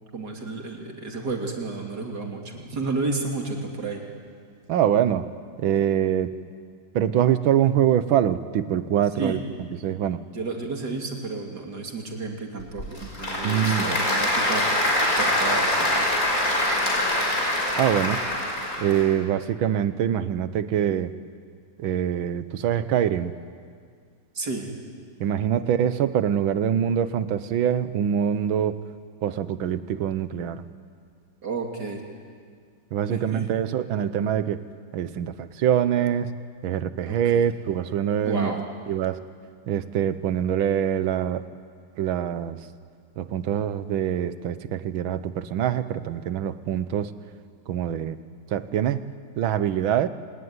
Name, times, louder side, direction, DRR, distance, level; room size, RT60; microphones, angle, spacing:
voice 1, 0.1-4.0 5.7-5.8 9.2-9.4 10.3-14.7 15.2-16.1 24.3-24.7 25.5-25.7 31.4-32.0 33.1-33.5 37.1-37.5 38.2-38.6, right 3 dB, 55° right, 1 dB, 3.4 m, -32 dB
voice 2, 4.7-5.3 5.6-6.3 6.9-9.4 9.8-10.2 13.4-14.0 17.8-18.2 18.8-21.1 21.8-23.3 25.2-28.8 29.2-30.6 32.9-34.6 34.9-36.3 36.6-38.5 38.9-39.2 39.7-41.4 42.0-42.6 43.2-47.1 47.7-48.2 48.5-49.1 49.4-50.1, right 9 dB, 85° right, 13 dB, 1.7 m, -24 dB
Applause / Crowd, 12.6-19.1, left 1 dB, 45° left, 5.9 m, -24 dB
27.5 x 19.0 x 9.6 m, 2.1 s
omnidirectional pair, 2.2 m